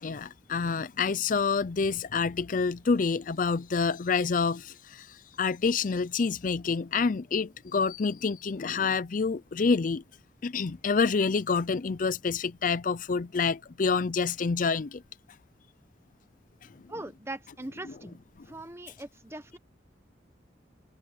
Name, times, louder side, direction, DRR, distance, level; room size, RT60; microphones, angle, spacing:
voice 1, 0.0-5.1 5.4-10.0 10.4-15.0 17.8-17.9, left 5 dB, 45° left, 0.5 m, -27 dB
voice 2, 16.9-18.2 18.5-19.6, right 1 dB, 15° right, 1.2 m, -41 dB
head